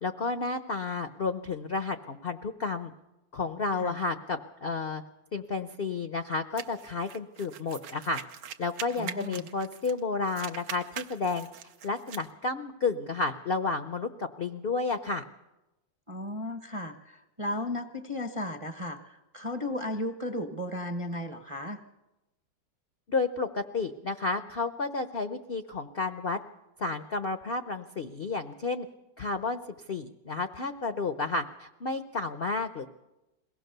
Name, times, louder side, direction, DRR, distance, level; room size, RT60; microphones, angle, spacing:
voice 1, 0.0-2.9 3.3-5.0 5.3-8.2 8.6-11.5 11.8-15.2 23.1-26.4 26.8-28.9 29.2-29.6 29.9-32.9, left 3 dB, 50° left, 9 dB, 0.7 m, -31 dB
sound 1, 6.6-10.0 10.3-12.3, right 8 dB, 75° right, 1.5 m, -42 dB
voice 2, 9.0-9.5 16.1-21.8, left 1 dB, 25° right, 7 dB, 0.7 m, -35 dB
22.0 x 18.0 x 6.7 m, 0.99 s
omnidirectional pair, 2.0 m